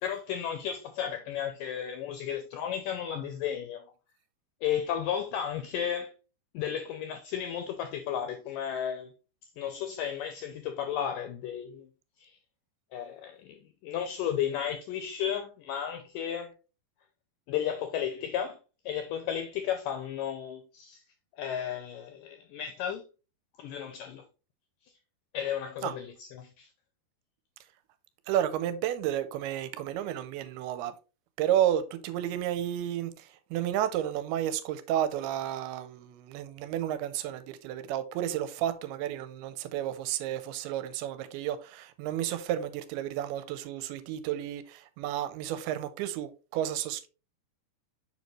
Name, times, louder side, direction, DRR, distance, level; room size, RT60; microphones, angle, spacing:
voice 1, 0.0-3.8 4.6-6.1 6.5-9.1 9.6-11.9 12.2-12.3 12.9-16.6 17.5-18.6 18.9-21.0 21.4-23.0 23.6-24.2 25.3-26.7, left 9 dB, 80° left, 1.9 m, -33 dB
voice 2, 28.3-31.0 31.4-47.1, right 11 dB, 85° right, 2.5 m, -32 dB
7.0 x 5.2 x 3.1 m
omnidirectional pair, 4.6 m